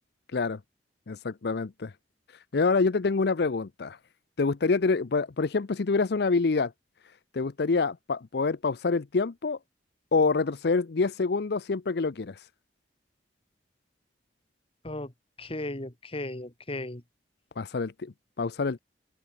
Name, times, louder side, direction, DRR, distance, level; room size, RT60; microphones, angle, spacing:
voice 1, 1.1-1.9 2.3-4.0 4.4-6.7 7.3-9.6 10.1-12.5 17.6-18.8, left 4 dB, 65° left, 0.6 m, -26 dB
voice 2, 15.4-17.0, left 1 dB, 30° left, 2.4 m, -35 dB
open air
head